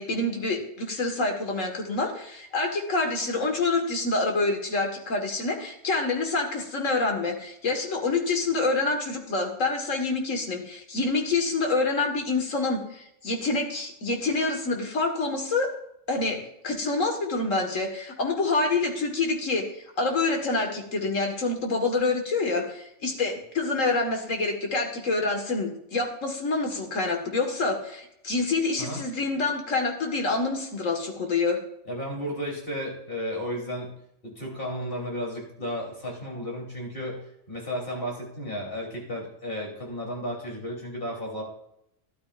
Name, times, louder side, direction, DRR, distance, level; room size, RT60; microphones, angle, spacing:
voice 1, 0.0-15.7 16.1-19.7 20.0-31.6, left 3 dB, 85° left, 3 dB, 2.1 m, -27 dB
voice 2, 31.9-33.9 34.2-37.2 37.5-41.4, equal, 45° left, -2 dB, 3.7 m, -33 dB
12.5 x 12.0 x 2.5 m, 0.78 s
omnidirectional pair, 1.3 m